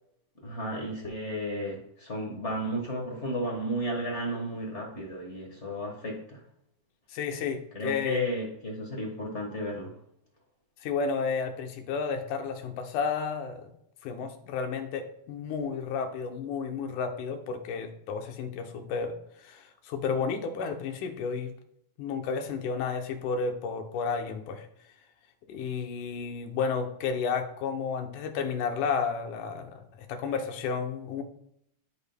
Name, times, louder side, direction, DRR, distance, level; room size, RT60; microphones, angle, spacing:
voice 1, 0.4-6.4 7.7-9.9, equal, 45° left, -1 dB, 0.9 m, -33 dB
voice 2, 7.1-8.3 10.8-13.7 14.0-21.5 22.0-24.7 25.5-31.2, left 5 dB, 90° left, 5 dB, 2.4 m, -32 dB
13.0 x 5.4 x 2.2 m, 0.73 s
omnidirectional pair, 3.4 m